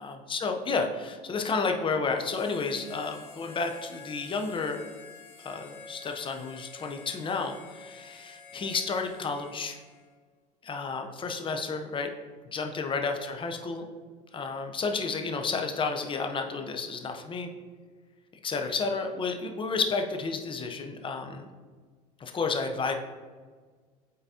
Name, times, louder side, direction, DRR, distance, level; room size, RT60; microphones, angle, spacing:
voice 1, 0.0-4.8 5.4-9.8 10.6-12.1 12.5-13.8 14.3-17.5 18.4-21.5 22.2-22.9, left 4 dB, 30° left, 5 dB, 0.8 m, -31 dB
Harmonica, 2.1-10.2, left 4 dB, 65° left, 1.8 m, -49 dB
8.9 x 3.9 x 2.8 m, 1.5 s
supercardioid pair, 95°, 18 cm